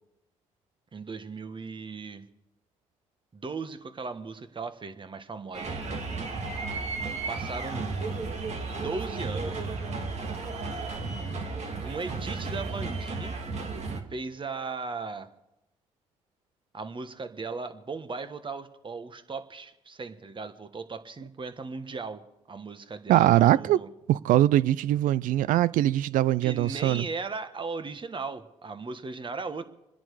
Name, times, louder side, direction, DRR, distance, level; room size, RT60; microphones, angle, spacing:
voice 1, 0.9-2.2 3.3-5.7 7.3-7.9 8.7-9.6 11.8-13.4 14.1-15.3 16.7-23.9 26.4-29.7, right 4 dB, 35° right, 9 dB, 1.5 m, -37 dB
sound 1, 5.5-14.0, right 3 dB, 50° right, 2.2 m, -33 dB
voice 2, 23.1-23.8 24.1-27.0, right 13 dB, 70° right, 20 dB, 0.5 m, -22 dB
26.5 x 10.5 x 4.9 m, 0.90 s
supercardioid pair, 55°, 14 cm